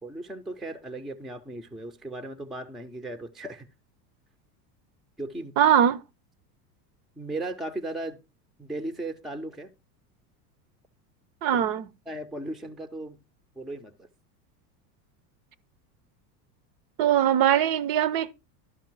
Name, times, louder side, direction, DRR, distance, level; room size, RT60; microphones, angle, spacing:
voice 1, 0.0-3.7 5.2-5.5 7.2-8.2 8.6-9.7 11.5-11.6 12.1-13.2 13.6-14.1, right 2 dB, ahead, 0.4 m, -36 dB
voice 2, 5.6-6.0 11.4-11.9 17.0-18.3, right 10 dB, 45° right, 0.6 m, -21 dB
12.0 x 5.3 x 4.5 m
hypercardioid pair, 100°, 49 cm